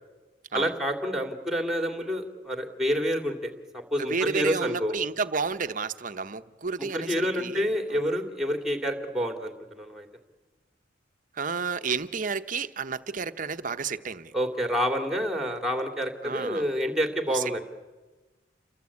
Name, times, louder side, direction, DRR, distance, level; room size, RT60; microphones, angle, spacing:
voice 1, 0.5-4.9 6.9-10.1 14.3-17.6, equal, ahead, 2.6 m, -28 dB
voice 2, 4.0-8.0 11.3-14.3 16.2-16.7 17.3-17.6, right 5 dB, 45° right, 0.9 m, -31 dB
29.0 x 22.5 x 8.5 m
head